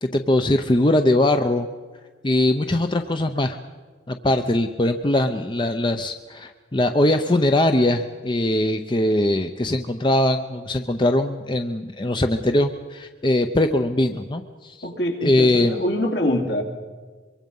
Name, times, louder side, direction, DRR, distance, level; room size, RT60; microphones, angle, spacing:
voice 1, 0.0-1.7 2.2-3.6 4.1-14.9 15.2-15.8, left 1 dB, 25° left, 7 dB, 0.7 m, -21 dB
voice 2, 14.8-16.6, equal, 65° left, 2 dB, 2.9 m, -24 dB
23.5 x 23.5 x 5.5 m, 1.4 s
head